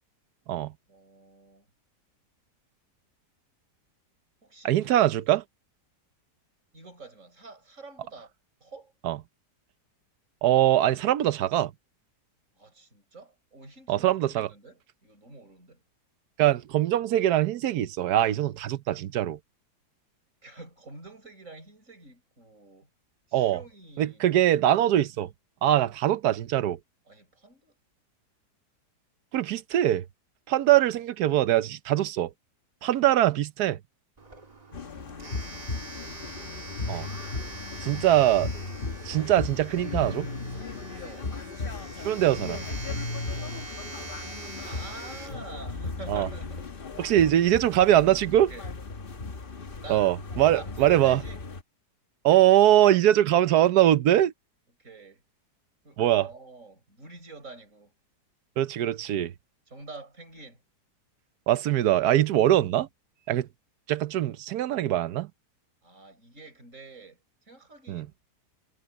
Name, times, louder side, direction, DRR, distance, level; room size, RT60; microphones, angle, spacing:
voice 1, 0.9-1.7 4.4-5.1 6.7-8.3 8.6-8.9 12.6-15.8 20.4-22.9 23.3-24.2 27.1-27.7 35.6-35.9 36.4-36.5 41.0-41.3 44.6-46.7 48.3-48.7 49.8-50.1 50.5-51.4 54.8-55.2 55.8-57.9 59.7-60.6 65.8-67.2 67.4-68.1, right 3 dB, 50° right, 7.4 m, -47 dB
voice 2, 4.6-5.4 9.0-9.2 10.4-11.7 13.9-14.5 16.4-19.4 23.3-23.6 24.0-25.3 25.6-26.8 29.3-30.0 30.5-32.3 32.8-33.8 36.9-37.1 37.8-38.5 39.0-40.3 42.0-42.6 46.1-46.3 47.0-48.5 49.9-51.2 52.2-54.3 56.0-56.3 58.6-59.3 61.5-62.9 63.3-63.5 63.9-65.3 67.9-68.1, right 12 dB, 70° right, 1.3 m, -22 dB
Domestic sounds home sounds, 34.2-46.6, right 3 dB, 25° right, 1.6 m, -44 dB
sound 1, 34.7-51.6, left 3 dB, 35° left, 1.3 m, -36 dB
omnidirectional pair, 1.8 m